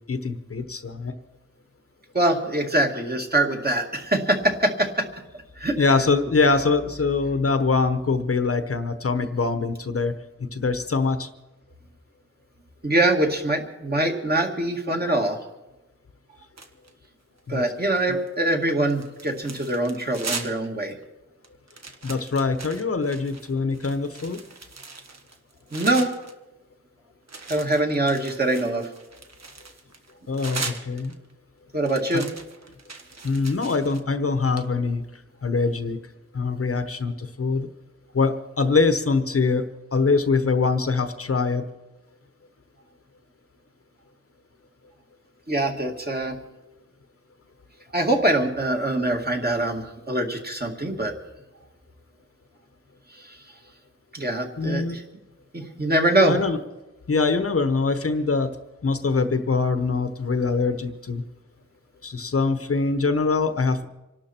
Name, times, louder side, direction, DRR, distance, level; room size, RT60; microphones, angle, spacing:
voice 1, 0.1-1.1 5.8-10.1 10.4-11.3 17.5-17.6 18.1-18.2 22.0-24.4 30.3-31.1 32.1-32.2 33.2-36.0 36.3-37.7 38.1-39.6 39.9-41.6 54.6-55.0 56.3-56.6 57.1-58.6 58.8-61.2 62.0-63.9, left 4 dB, 50° left, 9 dB, 1.0 m, -23 dB
voice 2, 2.1-5.1 5.6-5.8 12.8-15.4 17.5-20.9 25.7-26.1 27.5-28.9 31.7-32.3 45.5-46.4 47.9-51.1 53.2-53.4 54.1-55.0 55.5-56.4, right 1 dB, 35° right, 2 dB, 2.2 m, -23 dB
sound 1, 16.6-17.1 17.5-18.3 18.6-20.7 21.0-21.1 21.4-26.3 27.3-31.3 31.8-34.0, right 4 dB, 60° right, 1.4 m, -38 dB
26.0 x 12.0 x 4.4 m, 1.0 s
wide cardioid pair, 100°, 29 cm